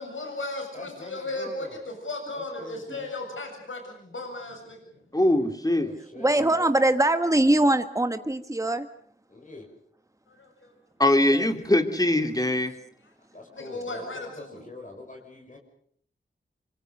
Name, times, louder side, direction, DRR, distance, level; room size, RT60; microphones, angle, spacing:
voice 1, 0.0-4.8 10.3-10.7 13.5-14.6, left 2 dB, 85° left, 4 dB, 7.3 m, -36 dB
voice 2, 0.7-1.8 2.3-3.1 5.7-6.7 9.3-9.7 13.3-15.6, left 2 dB, 40° left, 1 dB, 6.0 m, -44 dB
voice 3, 5.1-5.9 11.0-12.7, left 1 dB, 20° left, 6 dB, 3.0 m, -22 dB
voice 4, 6.2-8.9 11.3-11.4, right 1 dB, 15° right, 9 dB, 1.4 m, -22 dB
25.5 x 24.5 x 6.6 m, 0.63 s
wide cardioid pair, 55°, 20 cm